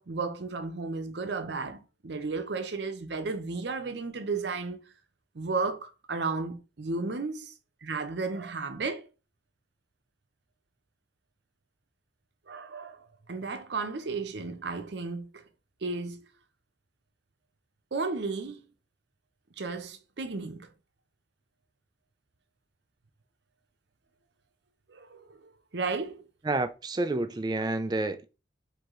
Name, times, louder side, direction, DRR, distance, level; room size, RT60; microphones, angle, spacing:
voice 1, 0.0-4.8 5.3-7.5 7.8-9.1 12.5-13.0 13.3-15.3 15.8-16.3 17.9-18.6 19.6-20.7 24.9-26.2 27.6-27.7, right 4 dB, 65° right, 0.7 m, -33 dB
voice 2, 26.4-28.3, right 2 dB, 20° right, 0.3 m, -29 dB
4.6 x 2.7 x 3.7 m
head